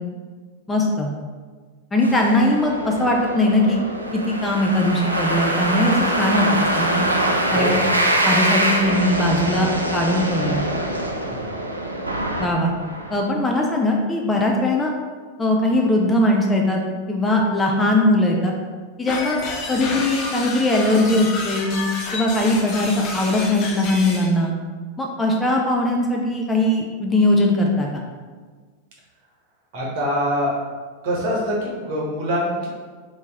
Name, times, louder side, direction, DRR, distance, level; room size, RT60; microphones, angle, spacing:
voice 1, 0.7-1.1 1.9-3.8 4.1-7.1 7.5-7.8 8.2-10.6 12.4-12.7 13.1-14.9 15.4-16.8 17.1-18.5 19.0-21.7 22.1-24.5 25.0-28.0, left 1 dB, 10° left, 0 dB, 0.4 m, -20 dB
sound 1, 2.0-13.2, right 1 dB, 80° right, 0.3 m, -24 dB
sound 2, 19.1-24.3, left 3 dB, 40° left, 0.8 m, -30 dB
voice 2, 29.7-30.5 31.0-32.7, equal, 50° right, -4 dB, 1.0 m, -24 dB
2.9 x 2.8 x 3.4 m, 1.5 s
figure-of-eight pair, 90°, 0 cm